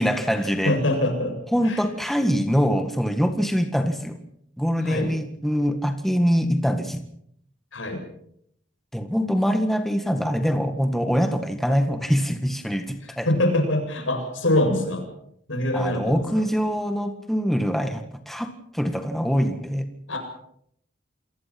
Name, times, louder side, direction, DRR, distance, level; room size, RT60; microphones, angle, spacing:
voice 1, 0.0-0.7 1.5-4.2 4.6-7.0 8.9-13.3 15.7-19.8, equal, ahead, 6 dB, 1.7 m, -24 dB
voice 2, 0.6-1.8 4.8-5.1 7.7-8.0 13.0-15.1 15.5-16.4 20.1-20.2, left 1 dB, 85° left, 4 dB, 7.8 m, -24 dB
28.5 x 19.0 x 6.0 m, 0.71 s
head